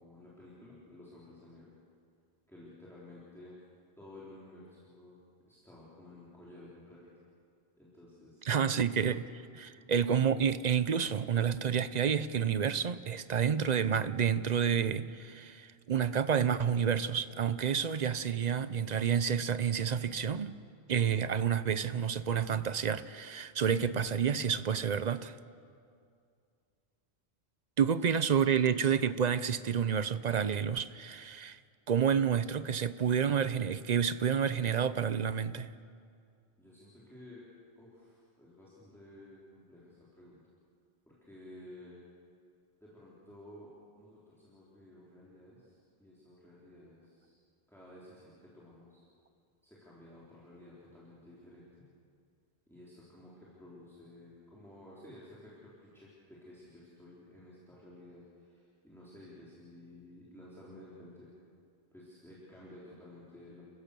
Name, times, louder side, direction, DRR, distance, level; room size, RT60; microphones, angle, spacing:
voice 1, 0.0-1.7 2.5-3.5 4.0-5.2 5.5-7.1 7.8-8.8 9.7-9.8 28.0-28.7 36.6-37.4 37.8-40.4 41.1-42.0 42.8-47.3 47.7-49.0 49.6-51.9 52.7-61.3 61.9-63.6, left 1 dB, ahead, -8 dB, 4.0 m, -53 dB
voice 2, 8.5-20.5 20.9-25.4 27.8-31.6 31.9-35.7, right 7 dB, 45° right, 14 dB, 0.7 m, -29 dB
30.0 x 15.5 x 6.9 m, 2.3 s
omnidirectional pair, 1.2 m